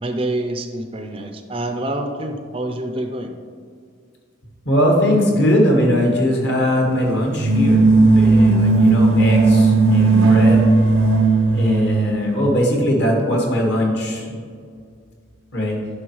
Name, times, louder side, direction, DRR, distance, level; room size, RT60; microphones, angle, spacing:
voice 1, 0.0-3.3, right 1 dB, 25° right, 5 dB, 0.4 m, -26 dB
voice 2, 4.6-10.6 11.5-14.3 15.5-15.8, equal, 55° left, -1 dB, 1.4 m, -20 dB
sound 1, 7.4-12.1, right 3 dB, 85° right, 0.7 m, -14 dB
9.8 x 5.5 x 3.0 m, 2.1 s
head